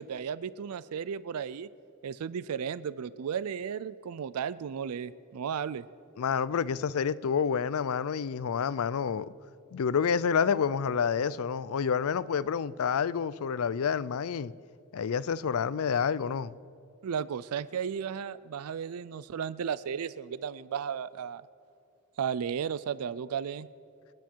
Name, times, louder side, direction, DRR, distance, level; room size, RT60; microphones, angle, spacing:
voice 1, 0.0-1.7 2.0-5.8 17.0-21.4 22.2-23.7, right 7 dB, 85° right, 0.4 m, -34 dB
voice 2, 6.2-9.3 9.7-14.5 14.9-16.6, left 6 dB, 75° left, 0.4 m, -28 dB
28.0 x 9.3 x 4.6 m
head